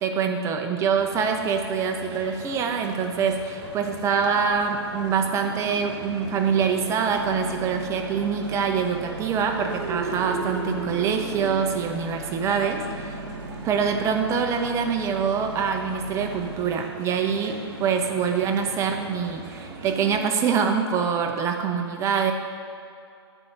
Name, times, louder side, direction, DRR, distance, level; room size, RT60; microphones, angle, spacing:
voice 1, 0.0-13.2 13.6-22.3, right 6 dB, 20° right, 4 dB, 0.6 m, -25 dB
sound 1, 0.9-20.2, right 3 dB, 50° right, 1.1 m, -38 dB
sound 2, 7.1-16.8, right 3 dB, 85° right, 0.5 m, -40 dB
7.9 x 4.4 x 5.8 m, 2.4 s
figure-of-eight pair, 120°, 14 cm